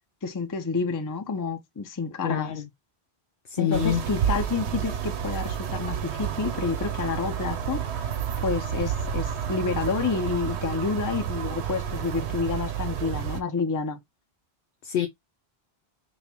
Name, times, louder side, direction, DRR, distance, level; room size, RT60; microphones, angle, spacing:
voice 1, 0.2-2.5 3.6-8.1 8.4-14.0, left 4 dB, 25° left, 0.4 m, -29 dB
voice 2, 2.2-2.7 3.5-4.0 14.8-15.1, left 9 dB, 65° left, 0.7 m, -26 dB
sound 1, 3.7-13.4, right 9 dB, 90° right, 1.0 m, -30 dB
5.4 x 2.1 x 2.9 m
omnidirectional pair, 1.1 m